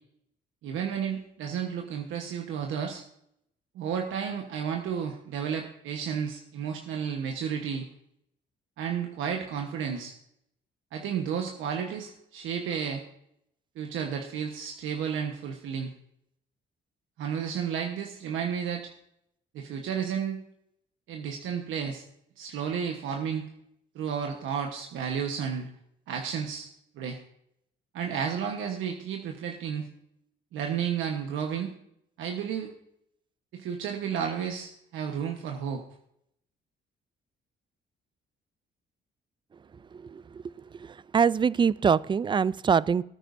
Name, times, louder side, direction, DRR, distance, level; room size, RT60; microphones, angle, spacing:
voice 1, 0.6-3.0 3.7-7.9 8.8-10.1 10.9-13.0 13.8-15.9 17.2-18.9 19.5-20.4 21.1-22.0 22.4-23.5 23.9-25.7 26.1-26.7 27.0-27.2 27.9-29.9 30.5-31.7 32.2-32.7 33.5-35.8, right 7 dB, 85° right, 2 dB, 1.2 m, -32 dB
voice 2, 40.0-40.4 40.8-43.0, right 6 dB, 25° right, 20 dB, 0.3 m, -24 dB
18.5 x 9.0 x 2.6 m, 0.74 s
cardioid pair, 90°, 20 cm